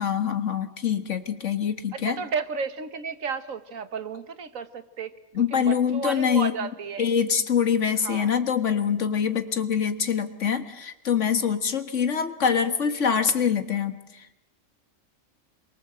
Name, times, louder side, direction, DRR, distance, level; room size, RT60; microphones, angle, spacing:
voice 1, 0.0-2.2 5.3-6.5 7.0-14.3, left 7 dB, 65° left, 9 dB, 1.9 m, -24 dB
voice 2, 1.9-7.1 8.0-8.3, right 5 dB, 80° right, 11 dB, 1.8 m, -33 dB
27.5 x 22.5 x 7.8 m, 0.93 s
omnidirectional pair, 1.4 m